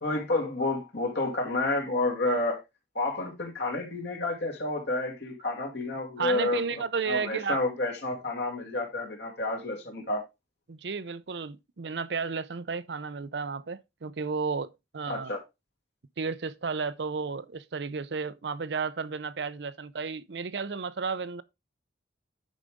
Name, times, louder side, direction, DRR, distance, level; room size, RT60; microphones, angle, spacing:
voice 1, 0.0-2.6 2.9-10.2 15.1-15.4, left 2 dB, 65° left, 2.6 m, -30 dB
voice 2, 6.2-7.6 10.7-15.3 16.2-21.4, right 5 dB, 70° right, 0.6 m, -33 dB
10.0 x 5.0 x 3.5 m
head